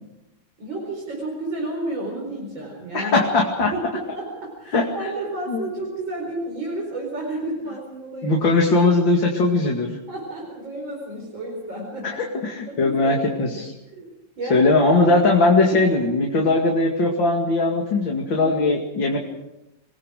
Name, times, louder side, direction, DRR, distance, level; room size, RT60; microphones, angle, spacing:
voice 1, 0.6-3.3 3.7-8.4 8.8-8.9 10.1-12.3 12.7-13.6 13.9-14.1 14.4-15.1 18.4-18.6, right 2 dB, 85° right, -1 dB, 5.4 m, -31 dB
voice 2, 2.9-3.7 4.7-4.8 5.5-5.7 8.2-9.9 12.0-12.2 12.4-13.7 14.5-19.2, left 3 dB, 80° left, 0 dB, 3.2 m, -19 dB
29.5 x 20.5 x 5.0 m, 0.94 s
omnidirectional pair, 2.0 m